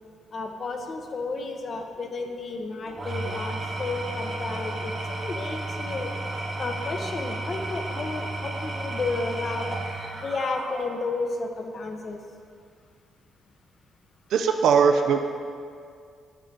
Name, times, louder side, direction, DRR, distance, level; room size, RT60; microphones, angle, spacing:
voice 1, 0.3-6.1 6.6-9.8 10.1-12.2, left 3 dB, 45° left, 4 dB, 0.7 m, -32 dB
Engine / Tools, 2.9-11.2, right 2 dB, 35° right, 1.0 m, -33 dB
voice 2, 14.3-15.2, right 6 dB, 75° right, 5 dB, 0.4 m, -20 dB
7.4 x 5.5 x 3.3 m, 2.2 s
cardioid pair, 90°, 0 cm